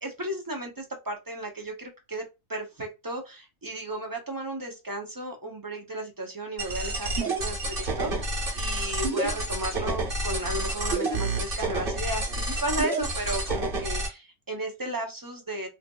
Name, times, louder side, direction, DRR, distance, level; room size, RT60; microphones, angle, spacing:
voice 1, 0.0-2.2 2.5-15.7, right 1 dB, 25° right, 3 dB, 0.4 m, -34 dB
sound 1, 6.6-14.1, right 2 dB, 45° right, 1.2 m, -29 dB
4.9 x 2.7 x 2.3 m, 0.25 s
omnidirectional pair, 1.4 m